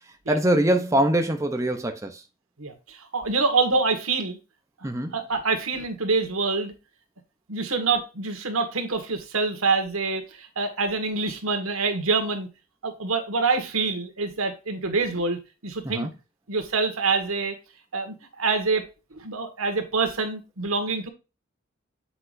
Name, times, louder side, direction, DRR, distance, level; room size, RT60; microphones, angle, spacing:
voice 1, 0.3-2.2 4.8-5.2 15.8-16.1, right 1 dB, 15° right, 0.6 m, -23 dB
voice 2, 2.6-4.4 5.1-6.7 7.5-12.5 12.8-16.1 16.5-17.5 17.9-18.8 19.1-21.1, right 4 dB, 85° right, 1.7 m, -26 dB
7.8 x 5.9 x 2.6 m
head